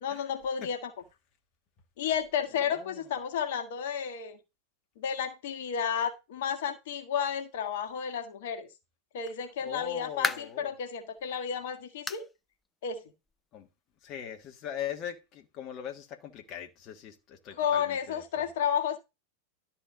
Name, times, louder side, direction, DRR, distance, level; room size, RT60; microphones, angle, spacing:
voice 1, 0.0-0.9 2.0-4.4 5.0-8.7 9.1-12.2 12.8-13.0 17.6-19.0, left 7 dB, 55° left, 1.7 m, -32 dB
voice 2, 2.5-3.0 9.6-10.7 13.5-13.7 14.0-18.4, left 9 dB, 35° left, 1.5 m, -40 dB
sound 1, 9.6-10.7 11.2-11.3 12.1-12.3 12.6-12.7 13.3-13.4 14.4-14.5, left 3 dB, 10° left, 0.7 m, -34 dB
12.5 x 4.4 x 6.2 m
figure-of-eight pair, 90°, 0 cm